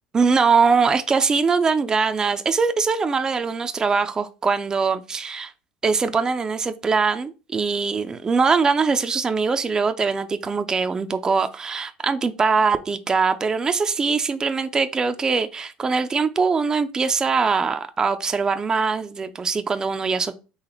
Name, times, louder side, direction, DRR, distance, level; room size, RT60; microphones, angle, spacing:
voice 1, 0.1-5.5 5.8-20.3, right 5 dB, 20° right, 0.4 m, -22 dB
4.0 x 2.9 x 4.3 m
supercardioid pair, 105°, 3 cm